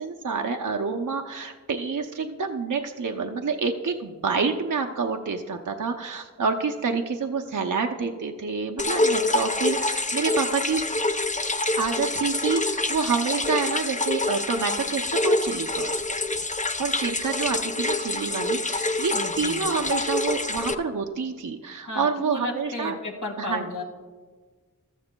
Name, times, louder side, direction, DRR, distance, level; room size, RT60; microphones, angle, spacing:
voice 1, 0.0-10.8 11.8-16.0 16.8-23.0 23.4-23.6, right 5 dB, 60° right, 3 dB, 0.6 m, -28 dB
sound 1, 8.8-20.7, left 2 dB, 20° left, 0.5 m, -26 dB
voice 2, 19.1-19.6 21.9-23.8, left 2 dB, 60° left, 1 dB, 2.0 m, -34 dB
14.5 x 13.0 x 2.2 m, 1.4 s
wide cardioid pair, 45°, 34 cm